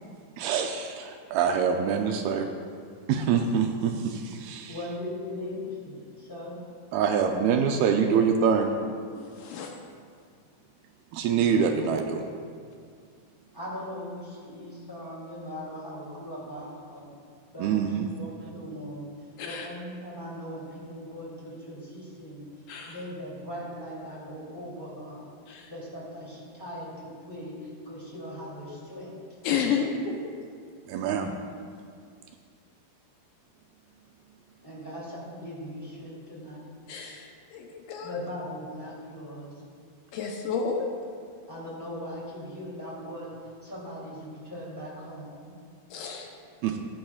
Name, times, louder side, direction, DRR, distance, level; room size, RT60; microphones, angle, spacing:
voice 1, 0.4-2.5 3.1-4.8 6.9-8.7 11.1-12.2 17.6-18.1 30.9-31.3 46.6-46.8, right 7 dB, 80° right, 4 dB, 2.3 m, -25 dB
voice 2, 4.7-6.6 11.3-11.8 13.5-17.1 17.5-19.1 19.4-22.5 22.8-25.3 25.7-29.1 34.6-36.6 38.0-39.5 41.5-45.7, equal, 5° left, -7 dB, 2.1 m, -39 dB
voice 3, 9.2-9.7 19.4-19.7 22.7-23.0 25.5-25.7 29.4-30.1 36.9-38.2 40.1-40.9 45.9-46.3, left 6 dB, 75° left, 1 dB, 2.5 m, -31 dB
15.5 x 10.5 x 2.4 m, 2.2 s
omnidirectional pair, 4.6 m